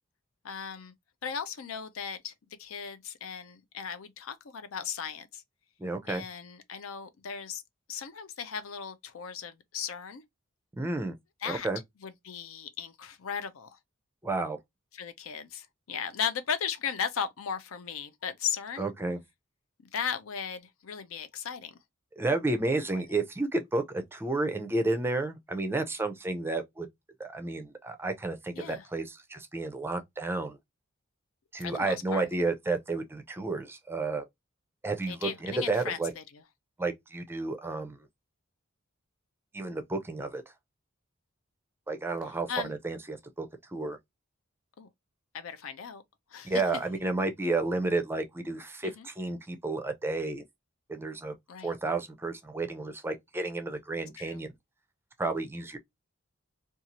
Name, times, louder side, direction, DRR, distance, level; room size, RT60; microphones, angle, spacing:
voice 1, 0.4-0.9 1.2-2.3 2.6-5.4 6.1-7.6 7.9-10.2 11.4-11.7 12.0-13.8 14.9-18.9 19.9-21.8 22.9-23.0 28.6-28.8 31.6-32.3 35.1-36.4 42.5-42.7 44.8-44.9 45.3-46.0 46.3-46.6 48.8-49.1 51.5-51.7 54.2-54.4, left 7 dB, 85° left, 0.5 m, -36 dB
voice 2, 5.8-6.2 10.7-11.1 11.5-11.8 14.2-14.6 18.8-19.2 22.2-26.9 27.2-30.6 31.5-34.2 34.8-36.1 36.8-38.0 39.5-40.4 41.9-44.0 46.4-50.4 50.9-51.4 51.6-54.5 55.2-55.8, right 2 dB, 10° right, 0.4 m, -31 dB
2.6 x 2.4 x 2.8 m
head